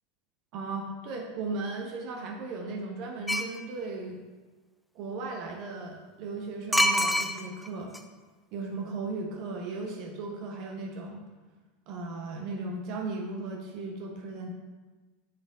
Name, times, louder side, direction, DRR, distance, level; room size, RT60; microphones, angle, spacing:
voice 1, 0.5-4.2 4.9-8.0 8.5-11.2 11.9-14.5, right 3 dB, 50° right, 1 dB, 1.3 m, -36 dB
sound 1, 3.3-3.6 6.7-7.7 7.9-8.0, left 1 dB, 5° left, 0.7 m, -25 dB
7.5 x 7.3 x 3.7 m, 1.3 s
figure-of-eight pair, 80°, 0 cm